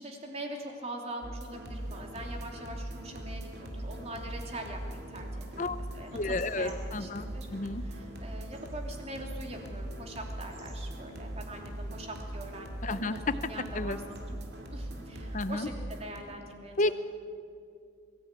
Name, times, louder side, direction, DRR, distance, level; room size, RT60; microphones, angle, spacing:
voice 1, 0.0-7.5 7.8-13.2 13.5-14.4 14.7-15.7 16.0-16.9, right 1 dB, 30° right, 2 dB, 2.9 m, -43 dB
sound 1, 1.2-16.2, right 1 dB, 55° right, 2.4 m, -41 dB
sound 2, 1.7-15.4, right 1 dB, 85° right, 4.2 m, -53 dB
voice 2, 6.1-7.2 7.5-7.8 12.8-13.3 13.7-14.0 15.3-15.7 16.8-16.9, left 2 dB, 40° left, 12 dB, 0.8 m, -31 dB
23.0 x 15.0 x 9.0 m, 2.4 s
head